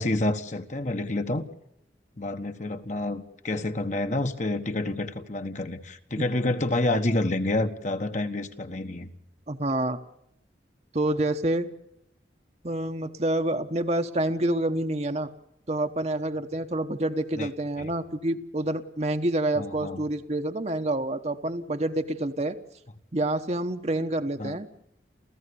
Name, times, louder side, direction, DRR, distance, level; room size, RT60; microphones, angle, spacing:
voice 1, 0.0-1.5 2.2-9.1 17.4-17.5 17.8-17.9 19.5-20.0 24.4-24.6, left 2 dB, 40° left, 1.3 m, -28 dB
voice 2, 9.5-10.0 10.9-11.7 12.6-15.3 15.7-22.5 23.1-24.7, right 1 dB, 35° right, 1.1 m, -27 dB
29.5 x 14.5 x 7.0 m
head